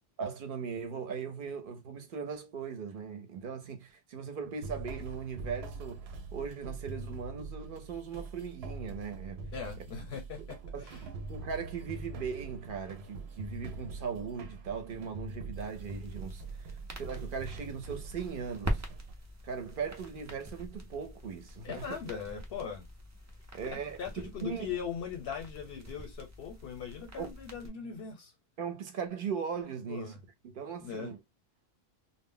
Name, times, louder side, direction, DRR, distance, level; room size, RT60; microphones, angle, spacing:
voice 1, 0.2-6.0 6.3-9.4 10.7-11.0 11.3-18.8 19.4-22.0 23.5-24.7 27.2-27.3 28.6-30.2 30.4-31.2, right 6 dB, 60° right, 0.7 m, -39 dB
sound 1, 4.6-19.1, right 3 dB, 90° right, 0.8 m, -43 dB
voice 2, 9.5-11.0 21.6-22.8 23.7-28.3 29.9-30.2 30.8-31.1, left 7 dB, 80° left, 0.9 m, -40 dB
sound 2, 15.6-27.7, equal, 25° right, 0.3 m, -44 dB
2.1 x 2.0 x 3.6 m
omnidirectional pair, 1.0 m